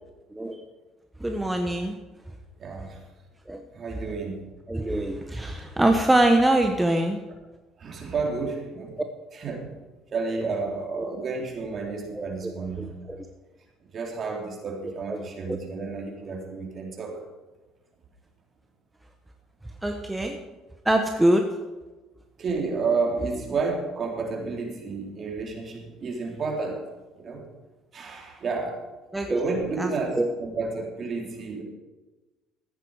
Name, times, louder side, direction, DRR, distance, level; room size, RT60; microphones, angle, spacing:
voice 1, 1.2-2.0 3.5-3.6 4.7-7.2 11.0-11.1 12.1-12.5 12.8-13.3 14.8-15.6 19.8-20.4 20.8-21.4 29.1-29.5 29.8-30.3, right 1 dB, 10° right, 4 dB, 1.3 m, -24 dB
voice 2, 2.6-3.0 3.7-4.4 7.8-9.0 9.3-9.7 10.1-13.1 13.9-17.2 21.1-21.2 22.4-26.8 27.2-27.4 27.9-28.8 29.3-31.6, right 4 dB, 45° right, 0 dB, 3.7 m, -31 dB
14.5 x 9.6 x 5.0 m, 1.2 s
supercardioid pair, 75°, 0 cm